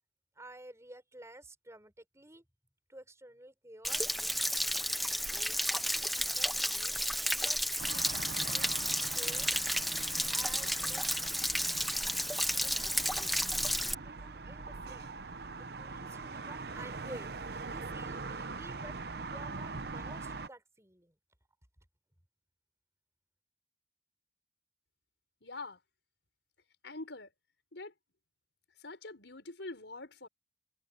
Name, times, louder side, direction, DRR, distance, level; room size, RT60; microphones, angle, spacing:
voice 1, 0.3-2.4 2.9-4.2 5.3-7.0 7.3-9.8 10.3-11.3 12.6-15.1 15.6-19.0 19.2-21.1, right 1 dB, 15° right, 6.4 m, -52 dB
Stream / Splash splatter / Trickle dribble, 3.8-13.9, equal, ahead, 0.9 m, -32 dB
sound 1, 7.8-20.5, right 3 dB, 60° right, 0.9 m, -43 dB
voice 2, 25.4-25.8 26.8-27.3 27.7-27.9 28.8-30.3, left 2 dB, 90° left, 5.3 m, -44 dB
head